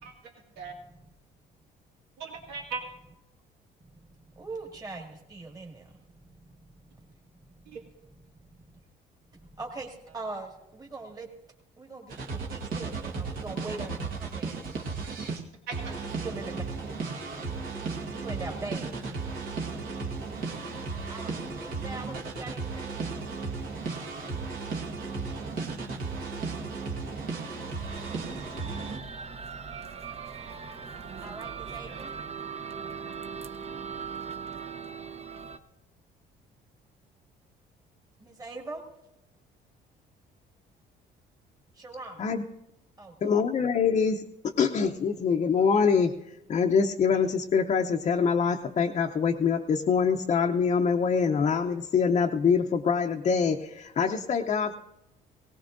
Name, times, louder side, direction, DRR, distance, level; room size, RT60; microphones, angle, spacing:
voice 1, 0.0-0.7 2.2-2.8 7.7-7.8 15.3-15.9, right 4 dB, 90° right, 0 dB, 2.1 m, -39 dB
voice 2, 4.4-5.0 5.3-5.7 9.6-9.9 10.1-10.5 10.9-11.3 11.9-12.0 12.5-13.9 14.4-14.5 16.2-16.6 18.2-18.9 21.1-21.4 21.8-23.1 31.2-32.1 38.4-38.8 41.8-42.1 43.0-43.3, right 3 dB, 20° right, 0 dB, 2.1 m, -40 dB
sound 1, 12.1-15.4 15.7-29.0, right 4 dB, 60° right, 1.5 m, -35 dB
sound 2, 27.9-35.6, right 6 dB, 40° right, 0.8 m, -39 dB
voice 3, 43.2-46.1 46.5-54.7, left 6 dB, 40° left, 2 dB, 0.7 m, -25 dB
18.0 x 17.5 x 2.6 m, 0.88 s
cardioid pair, 110°, 17 cm